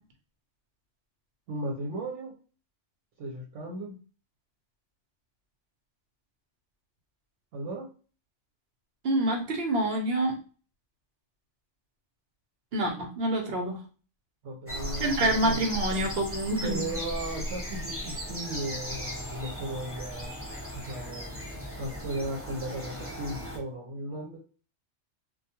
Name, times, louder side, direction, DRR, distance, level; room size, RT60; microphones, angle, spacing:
voice 1, 1.5-2.3 3.2-4.0 7.5-7.9 14.4-15.6 16.6-20.4 20.7-21.3 21.8-24.4, right 1 dB, 85° right, 1 dB, 0.9 m, -36 dB
voice 2, 9.0-10.4 12.7-13.8 15.0-16.9, right 1 dB, 60° right, 3 dB, 0.9 m, -27 dB
sound 1, 14.7-23.6, equal, 15° right, 0.6 m, -37 dB
2.3 x 2.2 x 2.8 m, 0.37 s
omnidirectional pair, 1.2 m